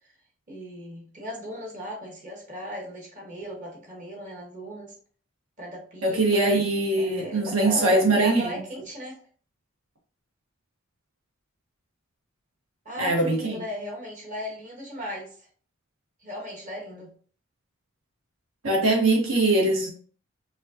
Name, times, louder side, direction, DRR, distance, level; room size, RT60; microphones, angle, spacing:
voice 1, 0.5-4.9 5.6-6.5 7.0-9.2 12.8-15.5 16.2-17.1, equal, 35° right, 1.3 m, -37 dB
voice 2, 6.0-8.6 13.0-13.5 18.6-19.9, right 2 dB, 70° right, 1.2 m, -22 dB
5.2 x 2.3 x 2.7 m
head